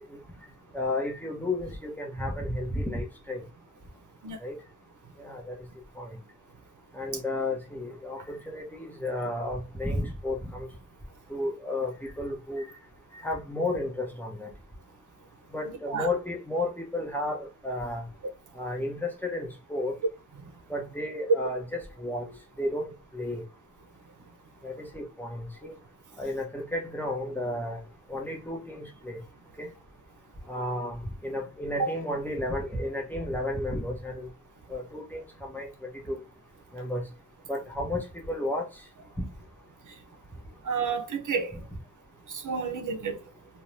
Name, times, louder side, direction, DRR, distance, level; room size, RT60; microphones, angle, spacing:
voice 1, 0.7-3.4 4.4-4.6 5.2-5.5 6.0-6.2 6.9-10.7 11.3-11.9 12.2-12.6 13.2-14.5 15.5-18.1 18.6-19.9 20.7-22.2 22.6-23.4 24.6-25.7 26.2-27.8 28.1-29.2 29.6-29.7 30.5-34.3 34.7-35.2 35.5-35.7 36.1-36.2 36.7-37.0 37.5-38.6 39.2-39.3, left 1 dB, 5° left, 0.8 m, -32 dB
voice 2, 40.6-41.6 42.3-43.2, right 5 dB, 65° right, 0.6 m, -30 dB
2.6 x 2.1 x 3.1 m
wide cardioid pair, 90°, 33 cm